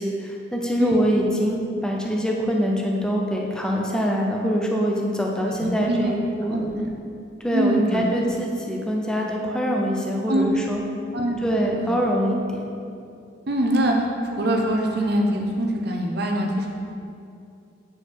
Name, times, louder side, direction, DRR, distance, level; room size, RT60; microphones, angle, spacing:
voice 1, 0.0-6.7 7.4-10.8 11.4-12.6, equal, 5° left, -1 dB, 0.6 m, -24 dB
voice 2, 5.4-6.1 6.5-6.9 7.5-8.0 10.3-10.5 11.1-11.9 13.5-16.7, right 1 dB, 55° right, 1 dB, 0.9 m, -24 dB
8.7 x 4.7 x 4.7 m, 2.5 s
head